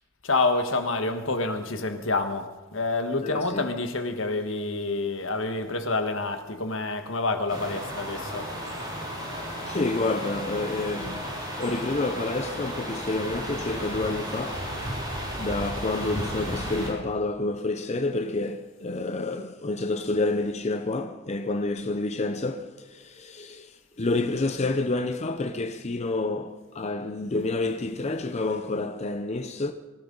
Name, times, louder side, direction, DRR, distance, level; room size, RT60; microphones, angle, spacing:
voice 1, 0.2-8.5, left 3 dB, 75° left, 1.5 m, -28 dB
voice 2, 3.2-3.7 9.7-11.3 11.6-14.7 15.4-29.7, left 2 dB, 35° left, 0.6 m, -29 dB
sound 1, 7.5-16.9, equal, 20° right, 6.6 m, -34 dB
24.5 x 15.0 x 4.0 m
head